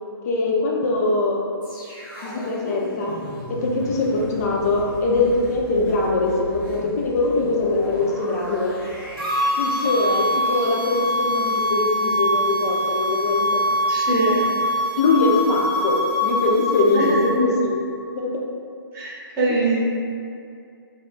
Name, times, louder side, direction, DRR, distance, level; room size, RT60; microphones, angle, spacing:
voice 1, 0.2-1.4 2.2-3.1 3.5-8.7 9.6-13.6 15.0-17.1 17.4-17.7 18.1-18.3, left 3 dB, 40° left, -2 dB, 0.4 m, -22 dB
sound 1, 1.6-12.8 13.1-13.3, left 1 dB, 10° left, 0.8 m, -38 dB
sound 2, 9.2-17.3, left 1 dB, 65° right, 0.6 m, -23 dB
voice 2, 13.9-14.5 16.9-17.5 18.9-19.8, right 2 dB, 20° right, -8 dB, 0.8 m, -23 dB
2.3 x 2.0 x 3.8 m, 2.4 s
hypercardioid pair, 140°, 13 cm